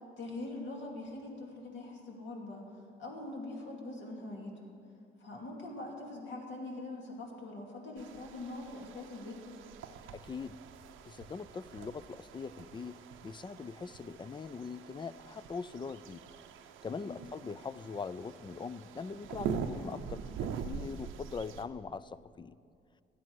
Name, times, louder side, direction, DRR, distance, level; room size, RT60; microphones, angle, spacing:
voice 1, 0.2-4.7 5.2-9.4 17.0-17.2, left 2 dB, 65° left, -1 dB, 2.7 m, -43 dB
sound 1, 8.0-21.6, right 7 dB, 90° right, 0.7 m, -44 dB
voice 2, 10.1-10.6 11.1-13.0 13.2-16.3 16.8-22.6, left 5 dB, 25° left, 16 dB, 0.4 m, -42 dB
16.0 x 11.0 x 4.8 m, 2.3 s
cardioid pair, 90°, 20 cm